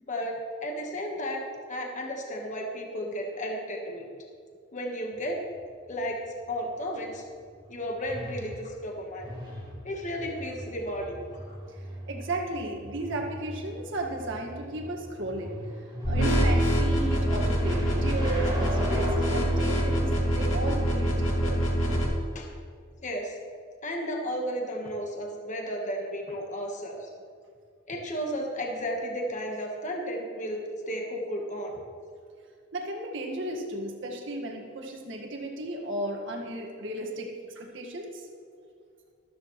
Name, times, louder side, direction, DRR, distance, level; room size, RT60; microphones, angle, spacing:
voice 1, 0.1-1.4 1.7-4.1 4.7-5.4 5.9-6.2 6.5-7.2 7.7-9.3 9.8-11.6 22.3-22.5 23.0-23.4 23.8-27.1 27.9-31.8, equal, 40° left, 1 dB, 1.4 m, -33 dB
sound 1, 5.1-20.2, equal, 20° right, 2.5 m, -39 dB
voice 2, 11.7-15.7 16.1-21.6 32.7-38.3, right 1 dB, 65° right, 1 dB, 1.9 m, -35 dB
sound 2, 16.0-22.0, equal, 70° left, 2.6 m, -25 dB
13.5 x 13.5 x 3.2 m, 2.2 s
head